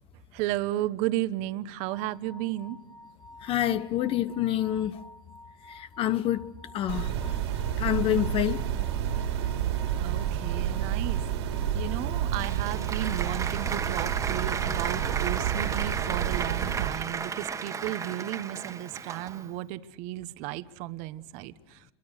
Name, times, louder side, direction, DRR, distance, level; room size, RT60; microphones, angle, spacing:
voice 1, 0.3-2.8 10.0-11.2 11.7-21.8, right 15 dB, 60° right, 1.2 m, -34 dB
sound 1, 1.8-17.0, left 1 dB, 25° left, 2.2 m, -51 dB
voice 2, 3.4-5.0 5.7-6.5 6.7-7.1 7.8-8.7, left 12 dB, 45° left, 1.0 m, -27 dB
sound 2, 6.9-16.9, right 10 dB, 85° right, 3.6 m, -30 dB
Applause, 12.0-19.6, right 6 dB, 25° right, 1.7 m, -34 dB
29.0 x 23.5 x 6.6 m
supercardioid pair, 115°, 14 cm